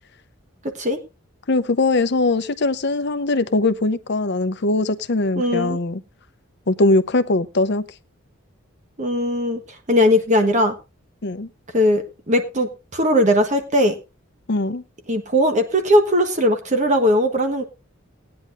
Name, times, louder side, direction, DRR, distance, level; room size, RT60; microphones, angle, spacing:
voice 1, 1.5-6.0 6.7-7.9 11.2-11.5 14.5-14.8, left 2 dB, 55° left, 12 dB, 0.7 m, -21 dB
voice 2, 5.4-5.8 9.0-9.6 9.9-10.7 11.7-14.0 15.1-17.6, equal, 35° right, 6 dB, 1.2 m, -19 dB
18.0 x 9.7 x 2.6 m, 0.27 s
head